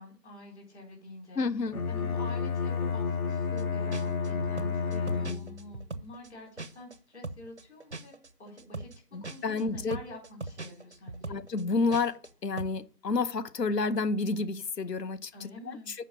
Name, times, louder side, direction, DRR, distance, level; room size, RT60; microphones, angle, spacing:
voice 1, 0.0-1.4 1.9-11.4 15.3-15.9, left 1 dB, 40° left, 4.3 m, -47 dB
voice 2, 1.4-1.8 9.1-10.0 11.3-16.0, left 3 dB, 80° left, 1.0 m, -30 dB
Bowed string instrument, 1.7-5.7, left 5 dB, 60° left, 1.2 m, -31 dB
sound 1, 3.6-3.7 3.9-7.0 7.2-12.3 12.6-12.8, right 2 dB, 45° right, 0.5 m, -40 dB
7.4 x 5.1 x 7.3 m
figure-of-eight pair, 170°, 49 cm